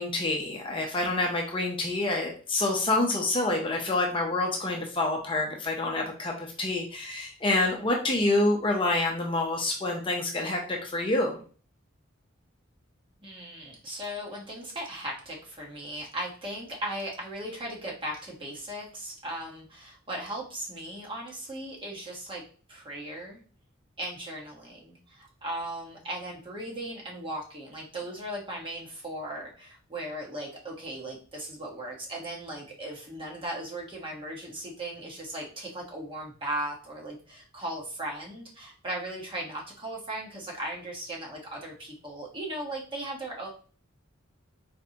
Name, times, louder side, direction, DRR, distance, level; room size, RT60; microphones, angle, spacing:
voice 1, 0.0-11.4, left 2 dB, 25° left, 0 dB, 0.7 m, -27 dB
voice 2, 13.2-22.4 22.7-23.4 24.0-43.5, right 1 dB, 25° right, -2 dB, 1.2 m, -37 dB
4.3 x 3.8 x 2.8 m, 0.41 s
head